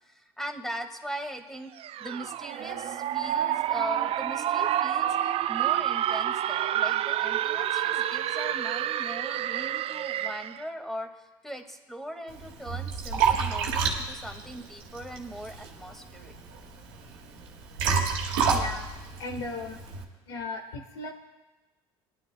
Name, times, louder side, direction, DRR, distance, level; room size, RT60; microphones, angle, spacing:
voice 1, 0.1-1.7 2.0-16.3, equal, 5° left, 4 dB, 1.9 m, -40 dB
sound 1, 1.8-10.6, right 11 dB, 50° right, 0.4 m, -28 dB
Liquid, 12.3-20.0, right 5 dB, 80° right, 1.9 m, -30 dB
voice 2, 18.5-18.9 19.2-19.8 20.3-21.1, left 3 dB, 90° left, 0 dB, 1.4 m, -36 dB
22.5 x 11.0 x 2.2 m, 1.2 s
hypercardioid pair, 70°, 13 cm